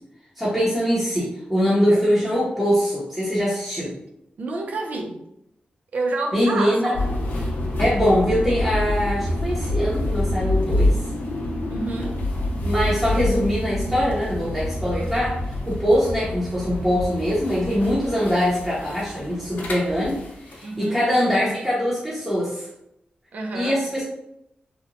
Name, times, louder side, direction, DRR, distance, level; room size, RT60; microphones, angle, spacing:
voice 1, 0.4-3.9 6.3-6.9 7.8-10.9 12.6-15.4 15.7-20.2 20.5-22.7 23.5-24.0, equal, ahead, -9 dB, 0.6 m, -22 dB
voice 2, 4.4-5.2 5.9-7.0 11.7-12.2 20.6-21.0 23.3-23.8, right 2 dB, 55° right, 2 dB, 0.4 m, -28 dB
sound 1, 6.9-20.9, left 1 dB, 70° left, 0.5 m, -27 dB
2.8 x 2.1 x 2.5 m, 0.81 s
wide cardioid pair, 165°, 3 cm